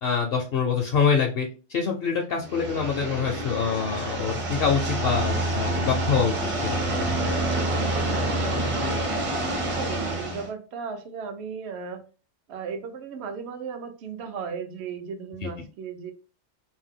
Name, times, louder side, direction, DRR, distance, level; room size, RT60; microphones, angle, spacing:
voice 1, 0.0-6.4 6.6-7.3 15.4-15.5, left 6 dB, 65° left, 2 dB, 0.7 m, -25 dB
sound 1, 2.4-10.5, right 1 dB, 40° right, 0.5 m, -27 dB
voice 2, 9.6-12.0 12.5-16.1, right 6 dB, 65° right, 7 dB, 0.8 m, -36 dB
2.7 x 2.1 x 3.5 m, 0.35 s
omnidirectional pair, 1.3 m